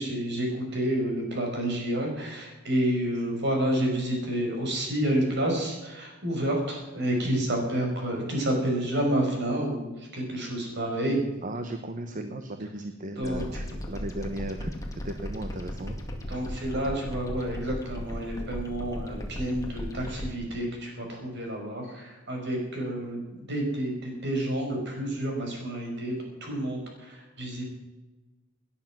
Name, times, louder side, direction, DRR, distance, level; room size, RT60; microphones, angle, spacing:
voice 1, 0.0-11.2 13.2-13.4 16.3-27.7, right 1 dB, 55° right, 1 dB, 5.3 m, -29 dB
voice 2, 11.4-16.0, right 1 dB, 40° right, 7 dB, 1.0 m, -36 dB
sound 1, 13.2-20.3, left 1 dB, 15° left, 2.3 m, -36 dB
18.5 x 10.0 x 6.1 m, 1.1 s
head